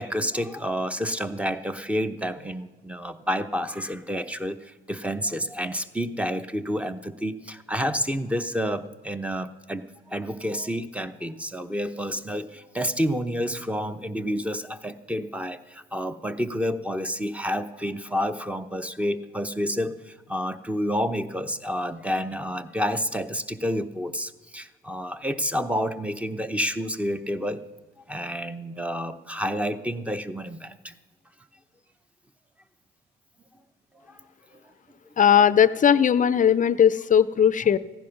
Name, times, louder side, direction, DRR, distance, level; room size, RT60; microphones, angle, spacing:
voice 1, 0.0-27.6 28.1-30.9 34.1-34.2 34.5-34.6 37.6-37.7, equal, 5° right, 11 dB, 0.8 m, -29 dB
voice 2, 35.2-37.8, left 8 dB, 40° left, 16 dB, 0.5 m, -18 dB
15.5 x 10.5 x 5.9 m, 1.3 s
cardioid pair, 90°, 20 cm